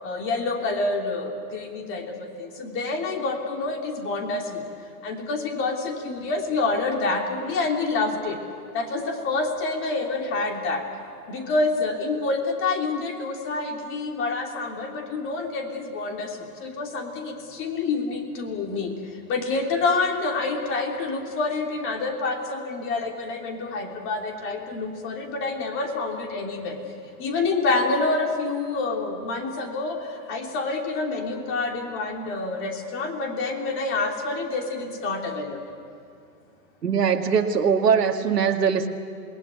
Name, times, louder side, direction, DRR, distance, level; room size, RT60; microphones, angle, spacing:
voice 1, 0.0-2.0 2.6-4.4 5.0-8.4 8.7-10.8 11.3-16.3 16.6-17.3 17.6-18.9 19.3-26.7 27.2-30.0 30.3-35.6, left 3 dB, 25° left, 2 dB, 3.1 m, -27 dB
voice 2, 36.8-38.9, right 6 dB, 85° right, 4 dB, 2.2 m, -21 dB
28.0 x 20.0 x 9.5 m, 2.4 s
hypercardioid pair, 135°, 47 cm